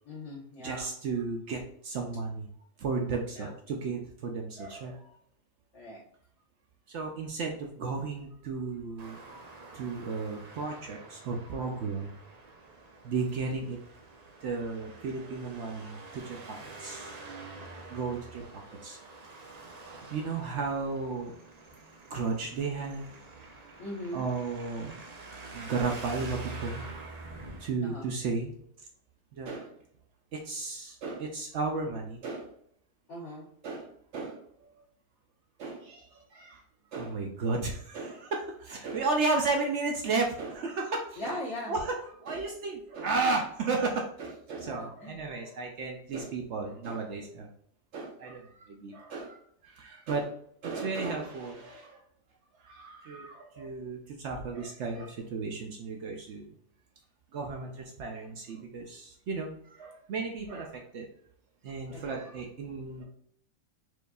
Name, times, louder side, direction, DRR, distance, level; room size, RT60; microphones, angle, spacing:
voice 1, 0.0-1.0 3.3-3.5 5.7-6.0 16.6-16.7 23.8-24.3 27.8-28.1 33.1-33.5 41.1-41.8 44.6-45.2 61.9-62.3, left 1 dB, 70° left, -10 dB, 1.6 m, -40 dB
voice 2, 0.6-2.5 2.8-5.2 6.9-9.4 9.7-12.1 13.0-13.8 14.4-16.4 16.8-17.1 17.9-18.4 18.8-19.0 20.1-21.3 22.1-23.1 24.1-25.0 25.5-26.8 27.6-28.5 29.4-29.7 30.3-32.5 33.6-34.4 35.6-36.0 36.3-36.6 36.9-41.3 41.7-47.5 47.9-49.4 49.6-50.3 50.6-52.0 52.6-56.5 57.3-57.7 58.0-61.1 61.6-63.0, right 4 dB, 65° right, 1 dB, 0.8 m, -34 dB
Traffic noise roadway noise, 9.0-27.7, right 3 dB, 85° right, 0.3 m, -47 dB
4.6 x 2.5 x 2.3 m, 0.66 s
omnidirectional pair, 1.5 m